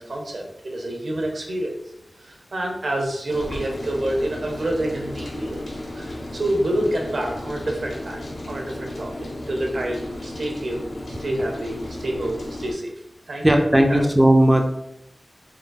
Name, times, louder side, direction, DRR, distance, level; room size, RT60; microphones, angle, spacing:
voice 1, 0.0-1.7 2.2-5.7 6.0-10.9 11.2-12.9 13.3-14.0, right 1 dB, 75° right, 1 dB, 0.8 m, -28 dB
Rain, 3.3-12.7, left 1 dB, 90° left, 0.8 m, -34 dB
voice 2, 13.4-14.6, right 1 dB, 20° right, 4 dB, 0.4 m, -16 dB
3.8 x 3.6 x 2.3 m, 0.80 s
wide cardioid pair, 50°, 0 cm